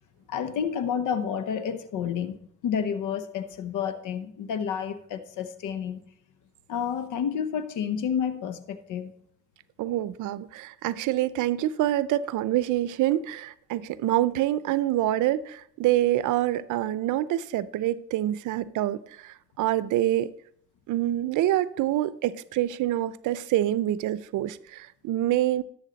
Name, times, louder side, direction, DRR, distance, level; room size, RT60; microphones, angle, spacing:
voice 1, 0.3-6.0 6.7-9.1, left 7 dB, 80° left, 0.8 m, -30 dB
voice 2, 9.8-20.3 20.9-25.6, right 14 dB, 85° right, 0.5 m, -26 dB
11.5 x 7.1 x 4.0 m
cardioid pair, 90°, 30 cm